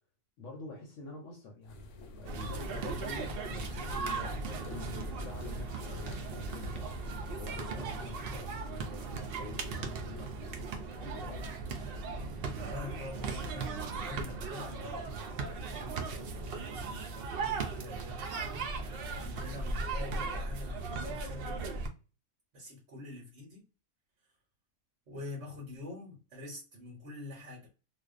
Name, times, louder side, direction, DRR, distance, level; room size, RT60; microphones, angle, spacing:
voice 1, 0.4-7.0 7.3-10.7 11.0-11.5, left 3 dB, 65° left, 0.9 m, -46 dB
sound 1, 1.6-7.6, left 2 dB, 90° left, 1.1 m, -49 dB
sound 2, 2.2-21.9, right 3 dB, 85° right, 0.5 m, -37 dB
voice 2, 7.7-8.1 11.6-11.8 12.6-18.4 19.2-21.8 22.5-23.6 25.1-27.7, left 1 dB, 55° right, 1.1 m, -46 dB
2.4 x 2.2 x 2.4 m
omnidirectional pair, 1.5 m